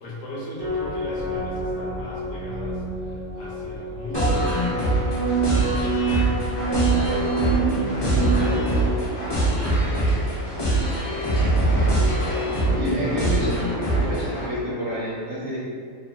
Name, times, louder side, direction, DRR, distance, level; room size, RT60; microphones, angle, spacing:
voice 1, 0.0-8.7 9.2-10.1, left 1 dB, 70° left, -5 dB, 0.8 m, -38 dB
sound 1, 0.6-8.7, right 4 dB, 80° right, 1.0 m, -27 dB
sound 2, 4.1-14.5, right 1 dB, 35° left, 0.4 m, -23 dB
sound 3, 6.4-12.6, left 1 dB, 90° left, 1.1 m, -38 dB
voice 2, 11.4-12.0 12.7-15.6, equal, 50° right, -8 dB, 0.9 m, -30 dB
2.6 x 2.6 x 2.3 m, 2.1 s
omnidirectional pair, 1.4 m